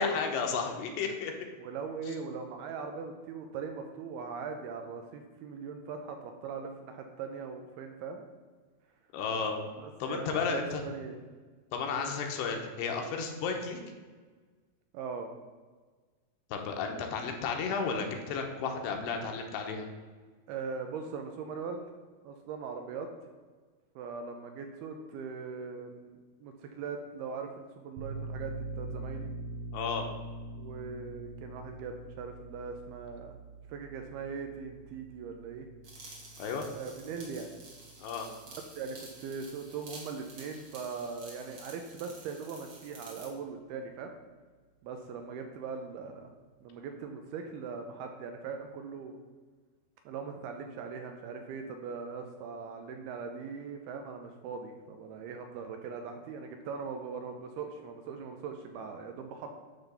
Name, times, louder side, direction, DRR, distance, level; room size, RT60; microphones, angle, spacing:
voice 1, 0.0-1.3 9.1-9.6 10.0-10.8 11.7-13.8 16.5-19.8 29.7-30.0 36.4-36.6 38.0-38.3, left 5 dB, 75° left, 3 dB, 3.0 m, -33 dB
voice 2, 1.6-8.2 9.8-11.2 11.9-12.1 14.9-15.3 20.5-21.9 22.2-23.1 24.0-29.3 30.6-33.4 33.7-35.7 36.7-37.5 38.5-44.1 44.8-46.3 46.6-49.1 50.1-59.5, right 5 dB, 80° right, 4 dB, 2.4 m, -40 dB
sound 1, 28.0-39.3, right 2 dB, 65° right, 2.5 m, -44 dB
sound 2, 35.8-43.3, right 2 dB, 50° right, 1.6 m, -50 dB
10.5 x 3.9 x 6.9 m, 1.4 s
omnidirectional pair, 5.0 m